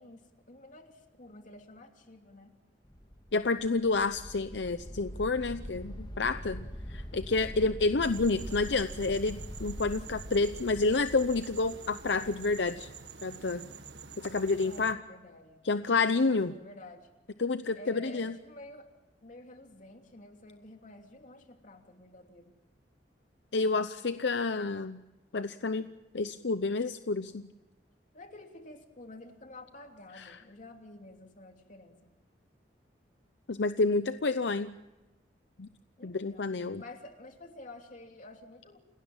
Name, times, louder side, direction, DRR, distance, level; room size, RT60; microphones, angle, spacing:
voice 1, 0.0-2.5 14.6-15.6 16.4-17.1 17.7-18.9 19.2-22.6 28.1-32.1 36.0-38.8, left 2 dB, 45° left, 4 dB, 3.0 m, -50 dB
sound 1, 2.8-12.8, equal, 25° left, 2.3 m, -44 dB
voice 2, 3.3-12.9 13.2-13.7 14.2-15.0 15.6-16.5 17.4-18.3 23.5-25.0 25.3-25.9 26.1-27.4 30.2-30.3 33.5-34.7 35.6-35.7 36.0-36.8, left 3 dB, 70° left, 11 dB, 0.7 m, -29 dB
sound 2, 8.0-14.9, right 6 dB, 80° right, 1.7 m, -48 dB
29.0 x 18.5 x 7.4 m, 1.1 s
head